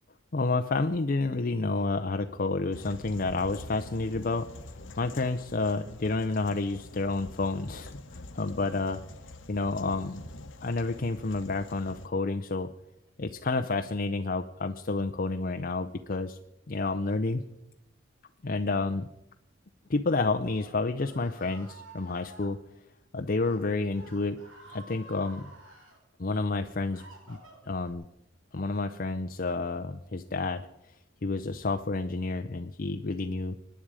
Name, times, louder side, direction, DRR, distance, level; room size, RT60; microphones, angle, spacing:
voice 1, 0.3-4.5 5.0-9.0 9.5-10.2 10.6-12.7 13.2-16.4 16.7-17.4 18.4-19.1 19.9-22.6 23.1-24.4 24.7-25.5 26.2-27.0 27.3-27.4 27.7-28.0 28.5-30.7 31.2-33.6, left 3 dB, 45° left, 7 dB, 0.6 m, -30 dB
sound 1, 2.7-12.1, left 2 dB, 65° left, 1.1 m, -46 dB
Screaming, 20.1-22.5 23.3-23.6 23.9-26.0 26.5-27.9, right 2 dB, 80° right, 5.6 m, -51 dB
25.5 x 10.5 x 4.9 m, 0.87 s
head